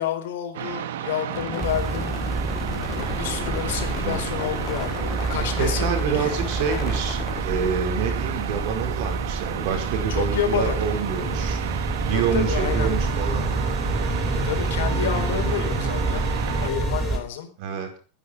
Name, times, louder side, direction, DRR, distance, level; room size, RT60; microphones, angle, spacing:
voice 1, 0.0-2.2 2.9-6.4 10.1-10.8 12.1-12.9 14.4-16.3 16.6-17.5, left 9 dB, 75° left, 6 dB, 4.3 m, -29 dB
sound 1, 0.5-16.7, right 11 dB, 85° right, 1.5 m, -32 dB
sound 2, 1.3-7.4, left 11 dB, 30° left, 1.0 m, -35 dB
sound 3, 1.6-17.2, right 2 dB, 10° right, 3.8 m, -28 dB
voice 2, 5.3-11.6 12.0-13.5 17.6-18.0, right 6 dB, 45° right, 5 dB, 5.1 m, -27 dB
20.5 x 10.5 x 5.9 m, 0.40 s
supercardioid pair, 165°, 0 cm